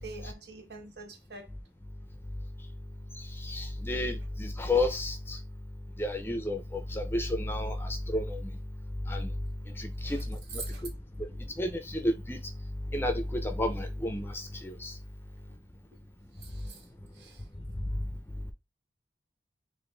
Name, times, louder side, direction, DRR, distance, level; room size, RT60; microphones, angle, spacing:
voice 1, 0.0-1.5 10.0-10.2 10.5-10.8 11.3-11.4 16.4-16.8 17.1-17.4, right 4 dB, 70° right, 1.2 m, -45 dB
voice 2, 3.4-5.4 6.0-8.4 9.1-9.3 9.8-10.4 11.6-12.4 12.9-14.9, left 1 dB, 15° left, 0.5 m, -31 dB
4.1 x 2.6 x 3.3 m
head